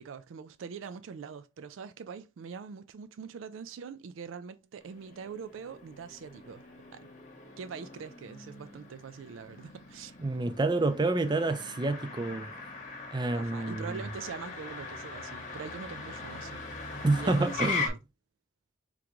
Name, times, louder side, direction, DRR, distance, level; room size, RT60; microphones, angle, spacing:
voice 1, 0.0-6.6 6.9-7.1 7.6-10.2 13.3-16.6 17.2-18.0, right 6 dB, 85° right, 0.4 m, -43 dB
Motor vehicle (road), 4.8-17.9, left 4 dB, 40° left, 1.0 m, -41 dB
voice 2, 10.2-12.5 13.1-14.0 17.0-17.9, right 2 dB, 25° right, 0.4 m, -28 dB
3.7 x 3.5 x 3.0 m
head